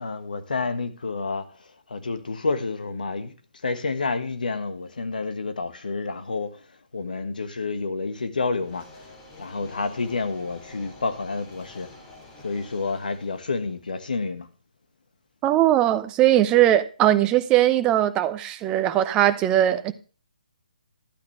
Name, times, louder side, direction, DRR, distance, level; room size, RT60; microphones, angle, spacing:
voice 1, 0.0-1.5 1.9-3.3 3.6-6.6 6.9-8.8 9.4-11.9 12.4-14.5, left 3 dB, 70° left, 1.4 m, -29 dB
sound 1, 8.6-13.7, left 2 dB, 25° left, 2.9 m, -48 dB
voice 2, 15.4-19.9, right 13 dB, 20° right, 0.7 m, -20 dB
12.0 x 8.5 x 3.2 m
figure-of-eight pair, 140°, 5 cm